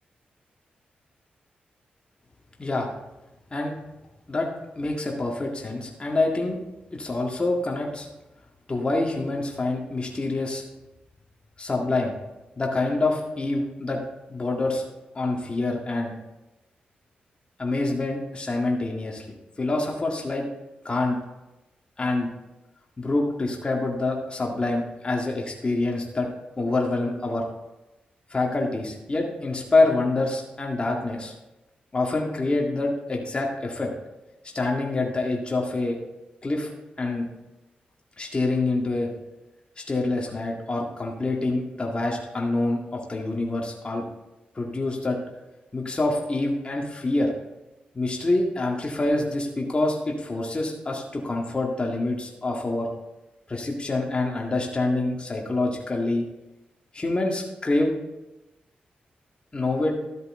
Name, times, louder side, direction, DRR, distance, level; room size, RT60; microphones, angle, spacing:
voice 1, 4.8-6.6 6.9-8.1 8.7-10.6 11.6-12.2 12.6-14.0 14.3-14.8 15.1-16.1 17.6-20.4 20.8-21.2 22.0-22.3 23.0-26.3 26.6-27.4 28.3-31.3 31.9-33.9 34.5-36.0 36.4-36.7 37.0-37.3 38.2-39.1 39.9-44.0 44.6-45.2 45.7-47.3 47.9-52.9 53.5-56.2 56.9-57.9 59.5-59.9, left 2 dB, 30° left, -1 dB, 1.9 m, -26 dB
13.0 x 8.0 x 3.8 m, 1.0 s
cardioid pair, 70°, 3 cm